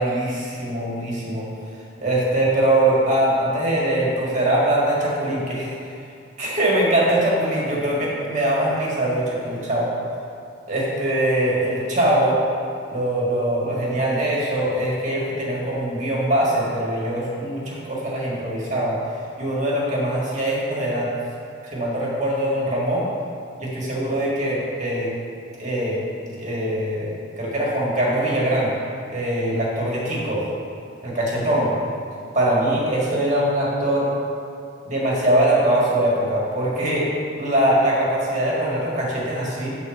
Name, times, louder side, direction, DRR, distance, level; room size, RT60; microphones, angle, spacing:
voice 1, 0.0-1.5 2.0-6.0 6.4-9.9 10.7-12.4 12.9-19.0 19.4-21.1 21.6-23.1 23.6-25.1 25.6-28.7 29.1-30.4 31.0-31.7 32.3-34.2 34.9-37.1 37.4-39.8, right 1 dB, 40° right, -5 dB, 1.8 m, -22 dB
7.6 x 4.1 x 6.3 m, 2.6 s
head